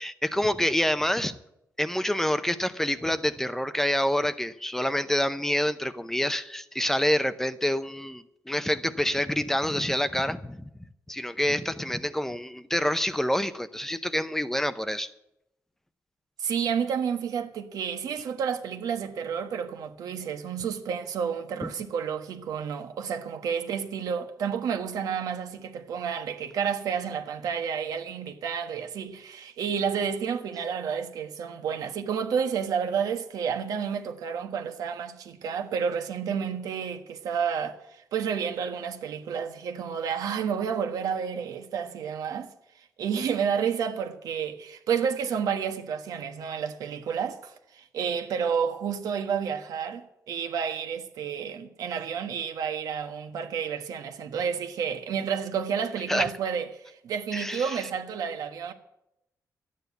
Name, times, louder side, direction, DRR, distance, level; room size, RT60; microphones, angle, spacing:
voice 1, 0.0-1.4 1.8-10.7 11.1-15.1 21.6-21.7 56.1-56.3 57.3-57.8, left 1 dB, 5° left, 0.6 m, -27 dB
voice 2, 16.4-58.7, right 7 dB, 85° right, 1.3 m, -30 dB
13.0 x 9.2 x 8.2 m
wide cardioid pair, 140°, 6 cm